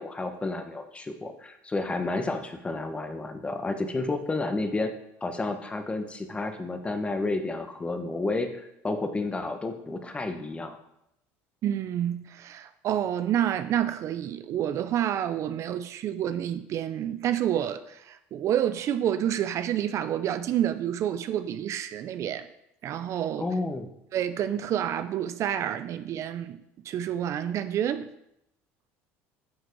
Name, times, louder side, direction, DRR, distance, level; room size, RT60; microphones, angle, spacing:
voice 1, 0.0-4.9 5.2-10.8 23.4-23.9, left 2 dB, 20° left, 1.1 m, -31 dB
voice 2, 11.6-22.5 22.8-23.5 24.1-28.1, right 10 dB, 55° right, 0.5 m, -29 dB
9.7 x 6.3 x 4.7 m
supercardioid pair, 95°, 6 cm